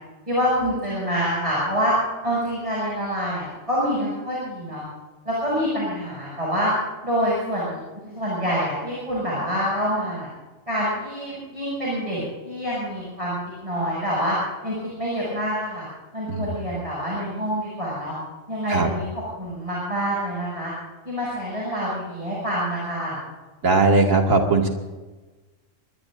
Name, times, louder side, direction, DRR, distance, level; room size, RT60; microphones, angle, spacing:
voice 1, 0.3-2.0 2.2-4.9 5.3-6.7 7.0-10.3 10.7-13.4 13.6-14.4 14.6-15.8 16.1-18.1 18.5-19.1 19.4-20.7 21.1-23.2, equal, 25° right, -7 dB, 7.0 m, -26 dB
voice 2, 23.6-24.7, right 3 dB, 85° right, 1 dB, 2.7 m, -19 dB
25.0 x 21.0 x 2.6 m, 1.2 s
omnidirectional pair, 1.3 m